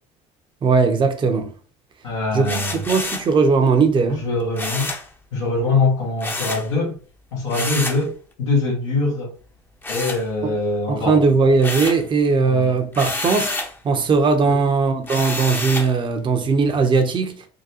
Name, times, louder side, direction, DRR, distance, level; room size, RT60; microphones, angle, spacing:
voice 1, 0.6-1.5 2.3-2.6 2.9-4.2 10.9-13.5 13.8-17.5, right 4 dB, 35° right, 0.7 m, -18 dB
voice 2, 2.0-2.8 4.2-4.9 5.3-7.0 7.3-9.3 9.9-11.2 12.4-12.8 14.4-14.6, left 3 dB, 90° left, 1.4 m, -23 dB
sound 1, 2.4-3.3 4.6-5.1 6.2-6.7 7.5-8.0 9.8-10.7 11.1-12.1 12.9-13.8 15.1-15.9, left 2 dB, 15° left, 0.6 m, -28 dB
3.8 x 2.2 x 2.7 m
hypercardioid pair, 75°, 15 cm